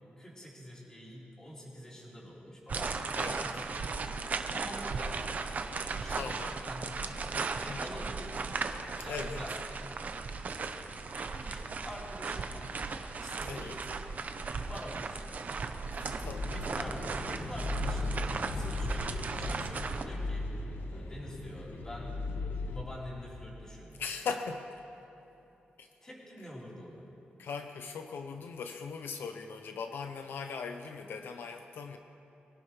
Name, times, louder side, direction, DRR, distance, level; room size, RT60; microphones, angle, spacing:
voice 1, 0.2-5.3 5.8-7.2 7.6-8.6 9.0-10.0 10.7-12.7 13.2-13.8 14.4-15.4 16.5-22.2 22.7-24.0 26.0-27.1, equal, 15° left, -6 dB, 4.0 m, -46 dB
sound 1, 2.7-20.0, right 4 dB, 45° right, 0.8 m, -37 dB
voice 2, 3.1-3.5 6.2-6.6 7.7-7.8 9.0-9.4 13.4-13.8 15.9-16.5 24.0-24.7 25.8-25.9 27.4-32.0, left 5 dB, 80° left, 6 dB, 0.8 m, -39 dB
sound 2, 16.2-22.8, left 3 dB, 65° left, 1.4 m, -37 dB
sound 3, 16.6-21.9, right 1 dB, 15° right, 2.0 m, -46 dB
24.5 x 17.5 x 3.3 m, 2.9 s
wide cardioid pair, 130°, 4 cm